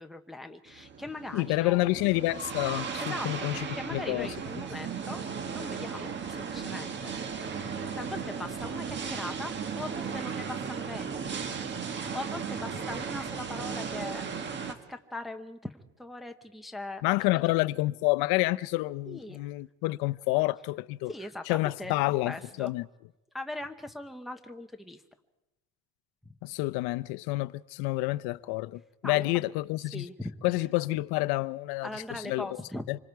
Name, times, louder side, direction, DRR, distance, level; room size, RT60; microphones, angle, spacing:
voice 1, 0.0-1.8 2.7-3.5 3.7-5.2 5.5-7.1 7.9-11.4 11.9-17.0 19.0-19.4 21.1-21.9 22.2-22.7 23.3-25.0 26.2-26.3 29.0-29.3 29.9-30.4 31.8-32.9, left 2 dB, ahead, 0.8 m, -40 dB
sound 1, 0.7-14.8, right 6 dB, 30° right, 1.7 m, -36 dB
voice 2, 1.3-4.3 17.0-21.1 21.5-22.9 26.4-30.1 30.4-32.5 32.9-33.0, left 20 dB, 85° left, 0.7 m, -29 dB
26.5 x 25.0 x 4.7 m
cardioid pair, 175°, 37 cm